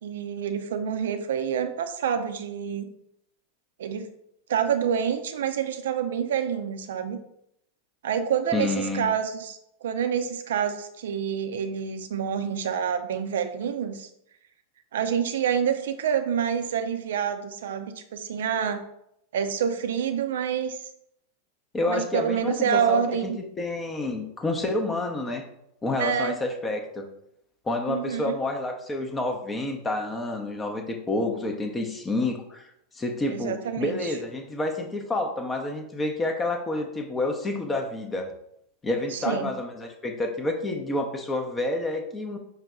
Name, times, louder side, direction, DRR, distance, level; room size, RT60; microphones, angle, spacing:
voice 1, 0.0-2.9 3.8-4.1 4.5-7.2 8.0-14.1 14.9-18.8 19.3-20.8 21.9-23.4 26.0-26.4 27.9-28.3 33.3-34.1 39.1-39.5, right 8 dB, 60° right, 8 dB, 0.5 m, -27 dB
voice 2, 8.5-9.1 21.7-23.3 23.6-25.4 25.8-27.1 27.6-32.7 32.9-38.3 38.8-42.4, left 2 dB, 15° left, 4 dB, 0.6 m, -29 dB
5.6 x 2.2 x 3.6 m, 0.76 s
figure-of-eight pair, 90°, 0 cm